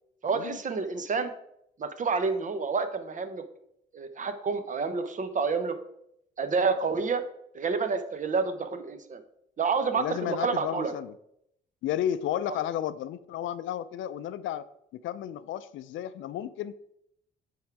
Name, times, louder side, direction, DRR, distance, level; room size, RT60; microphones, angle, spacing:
voice 1, 0.2-1.3 1.8-3.4 3.9-5.8 6.4-7.2 7.5-9.2 9.6-10.9 12.5-12.6, right 4 dB, 40° right, 9 dB, 0.9 m, -29 dB
voice 2, 10.0-11.1 11.8-14.6 14.9-16.9, left 11 dB, 75° left, 15 dB, 0.4 m, -33 dB
9.2 x 3.6 x 4.7 m, 0.75 s
cardioid pair, 90°, 20 cm